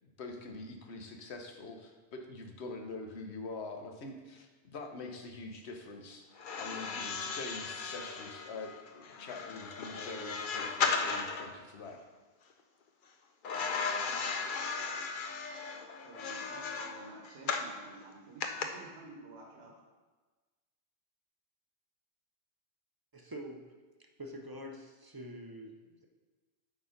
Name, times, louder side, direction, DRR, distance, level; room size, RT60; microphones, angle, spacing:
voice 1, 0.0-12.0, left 3 dB, 70° left, 4 dB, 1.2 m, -45 dB
sound 1, 6.4-11.5 13.4-17.7 18.4-18.6, left 5 dB, 55° left, 0.7 m, -36 dB
voice 2, 16.0-19.7, right 2 dB, 70° right, 0 dB, 1.3 m, -51 dB
voice 3, 23.1-23.7 24.2-26.0, equal, 30° right, 3 dB, 0.5 m, -46 dB
8.7 x 4.1 x 5.1 m, 1.3 s
omnidirectional pair, 1.2 m